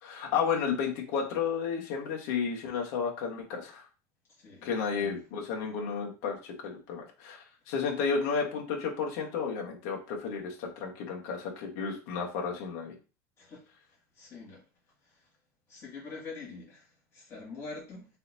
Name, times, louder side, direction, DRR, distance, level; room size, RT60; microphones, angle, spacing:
voice 1, 0.0-3.8 4.6-12.9, left 6 dB, 60° left, 1.4 m, -32 dB
voice 2, 4.4-5.2 13.4-13.7 14.1-14.6 15.0-15.3 15.7-18.1, left 4 dB, 30° left, 2.2 m, -45 dB
4.1 x 4.0 x 2.7 m
cardioid pair, 170°, 9 cm